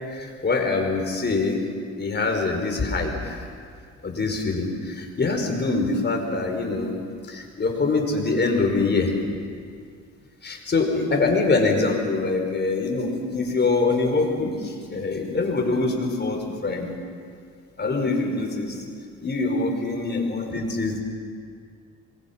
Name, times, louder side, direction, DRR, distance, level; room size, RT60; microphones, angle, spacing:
voice 1, 0.1-1.6 2.0-3.4 4.0-6.9 7.3-9.1 10.4-16.9 17.8-18.8 19.2-21.0, left 3 dB, 35° left, 2 dB, 4.9 m, -24 dB
27.0 x 21.5 x 5.9 m, 2.2 s
cardioid pair, 90°, 30 cm